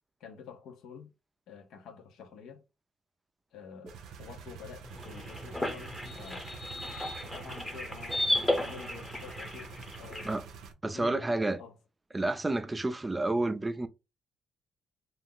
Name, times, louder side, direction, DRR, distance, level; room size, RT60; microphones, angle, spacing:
voice 1, 0.2-1.1 1.5-2.6 3.5-6.5 7.0-10.3 10.9-11.3 11.6-11.8, left 6 dB, 80° left, 0.6 m, -48 dB
sound 1, 3.9-10.7, right 6 dB, 85° right, 0.5 m, -47 dB
sound 2, 4.8-10.3, left 1 dB, 10° left, 0.8 m, -34 dB
voice 2, 10.8-11.6 12.1-13.9, right 2 dB, 15° right, 0.4 m, -30 dB
2.4 x 2.0 x 3.6 m
cardioid pair, 90°, 0 cm